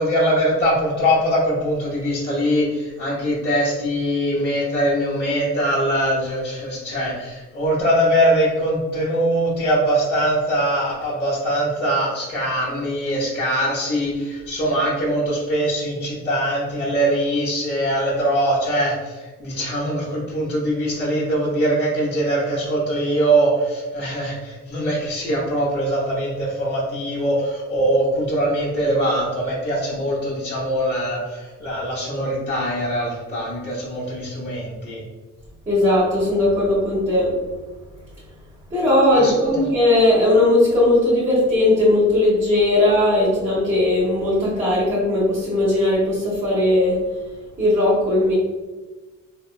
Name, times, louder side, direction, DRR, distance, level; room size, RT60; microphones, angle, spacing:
voice 1, 0.0-35.0 39.1-39.7, right 1 dB, 35° left, -8 dB, 1.1 m, -22 dB
voice 2, 35.7-37.3 38.7-47.0 47.6-48.4, left 1 dB, 25° right, -9 dB, 1.4 m, -18 dB
3.3 x 3.0 x 2.5 m, 1.3 s
cardioid pair, 90°, 30 cm